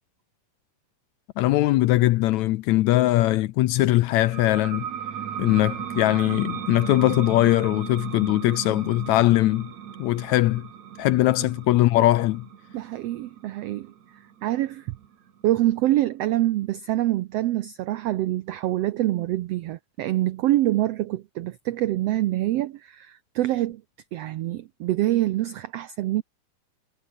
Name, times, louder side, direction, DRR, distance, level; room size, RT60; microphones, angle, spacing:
voice 1, 1.4-4.8 5.4-9.7 10.0-10.7 11.0-12.5, left 16 dB, 75° left, 1.8 m, -21 dB
sound 1, 4.2-15.5, right 8 dB, 60° right, 3.2 m, -36 dB
voice 2, 12.7-13.9 14.4-15.0 15.4-23.8 24.1-26.2, right 15 dB, 90° right, 1.4 m, -25 dB
omnidirectional pair, 3.7 m